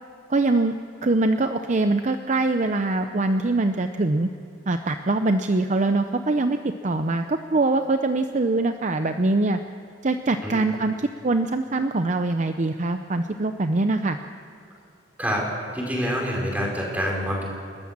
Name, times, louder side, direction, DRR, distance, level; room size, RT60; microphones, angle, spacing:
voice 1, 0.3-0.8 1.0-4.3 4.7-9.6 10.0-10.9 11.2-14.2, right 2 dB, 40° right, 8 dB, 0.6 m, -23 dB
voice 2, 15.7-17.4, equal, 10° right, -2 dB, 4.9 m, -26 dB
30.0 x 13.5 x 7.4 m, 2.7 s
head